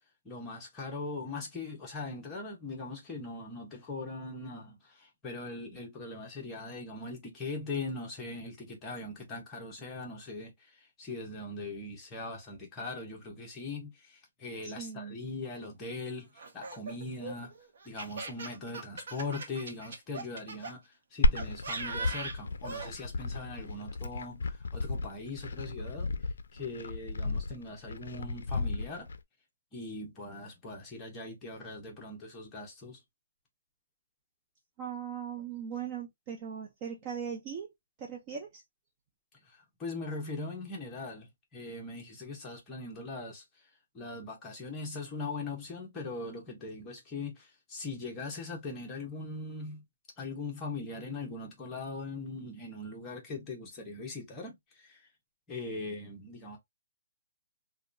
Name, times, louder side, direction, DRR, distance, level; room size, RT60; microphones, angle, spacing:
voice 1, 0.2-17.6 17.8-26.1 26.5-29.1 29.7-33.0 39.4-43.4 43.9-49.8 50.2-55.1 55.5-56.6, left 3 dB, 10° left, 0.8 m, -40 dB
voice 2, 14.6-15.2 34.8-37.7 38.0-38.6, right 7 dB, 20° right, 0.4 m, -39 dB
Laughter, 16.4-20.7 21.4-22.9, right 4 dB, 55° right, 0.8 m, -40 dB
Glass, 21.2-29.2, left 2 dB, 70° left, 0.4 m, -33 dB
2.8 x 2.2 x 2.5 m
hypercardioid pair, 170°, 0 cm